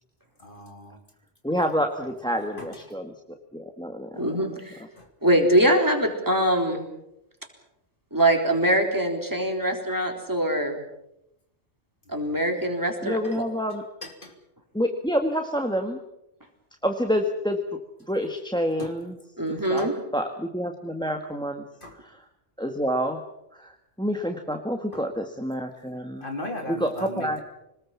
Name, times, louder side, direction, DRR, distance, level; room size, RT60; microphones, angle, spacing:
voice 1, 0.4-1.0 2.3-2.7 5.0-5.1 12.2-12.4 13.2-13.4 14.0-14.3 18.8-18.9 19.6-19.9 21.8-21.9 24.9-25.0 26.2-27.4, left 1 dB, 45° left, 4 dB, 3.4 m, -38 dB
voice 2, 1.4-3.1 3.5-4.3 13.0-13.8 14.7-16.0 16.8-17.6 18.1-19.2 19.5-21.6 22.0-22.2 22.6-23.2 23.5-23.7 24.0-26.3 26.7-27.4, equal, 5° left, 4 dB, 1.6 m, -28 dB
voice 3, 4.1-4.8 5.2-6.9 8.1-10.8 12.1-13.4 19.4-19.9, right 1 dB, 15° right, 2 dB, 4.0 m, -23 dB
26.5 x 20.0 x 7.4 m, 0.85 s
omnidirectional pair, 1.2 m